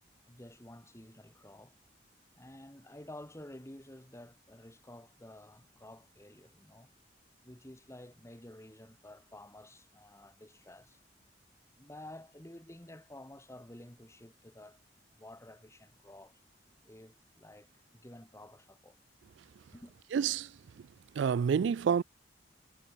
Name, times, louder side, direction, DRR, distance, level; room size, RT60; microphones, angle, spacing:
voice 1, 0.3-1.7 2.4-6.9 7.4-11.0 11.8-14.8 15.1-16.4 16.8-19.0 19.7-19.9, left 1 dB, 15° left, 2.6 m, -51 dB
voice 2, 20.1-20.9 21.1-22.0, right 7 dB, 80° right, 0.3 m, -29 dB
head